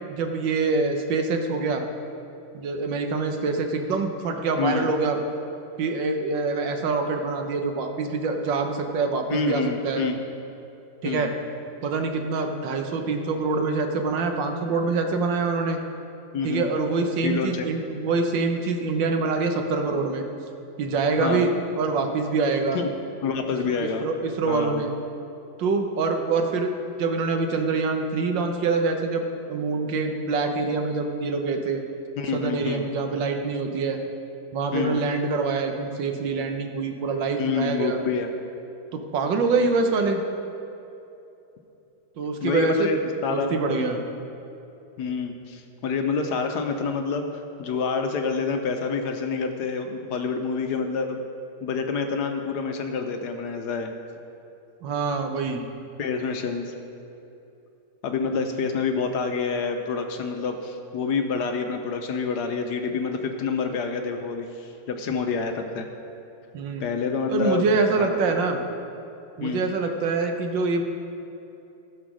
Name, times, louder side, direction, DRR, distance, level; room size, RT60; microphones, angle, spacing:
voice 1, 0.1-1.8 2.5-5.2 5.8-10.0 11.0-11.3 11.8-15.8 16.4-20.2 20.8-22.8 23.6-24.9 25.6-26.7 27.0-31.8 32.3-34.0 34.5-38.0 38.9-40.2 42.2-42.9 43.3-44.0 54.8-55.6 58.2-58.5 66.5-66.9 67.3-68.6 69.4-70.8, right 4 dB, 80° right, 5 dB, 1.6 m, -25 dB
voice 2, 4.6-4.9 9.3-10.2 11.0-11.3 16.3-16.7 17.2-17.7 21.2-21.5 22.7-22.9 23.2-24.1 24.5-24.9 32.2-32.9 34.7-35.1 37.4-38.3 42.4-44.0 45.0-51.2 51.6-53.9 56.0-56.7 58.0-65.9 66.8-67.7 68.0-68.5 69.4-69.7, left 5 dB, 70° left, 5 dB, 1.2 m, -27 dB
15.0 x 5.1 x 6.2 m, 2.8 s
omnidirectional pair, 2.0 m